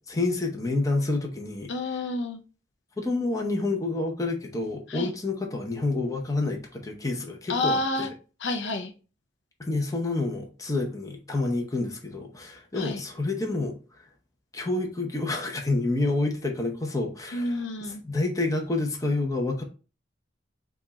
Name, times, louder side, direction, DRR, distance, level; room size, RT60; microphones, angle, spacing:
voice 1, 0.0-2.0 3.0-8.1 9.6-13.7 14.5-19.6, left 2 dB, 20° left, 0.8 m, -28 dB
voice 2, 1.7-2.4 4.9-5.1 7.5-8.1 8.4-8.9 12.8-13.0 17.3-18.0, left 2 dB, 65° left, 0.6 m, -29 dB
5.1 x 2.4 x 4.0 m
head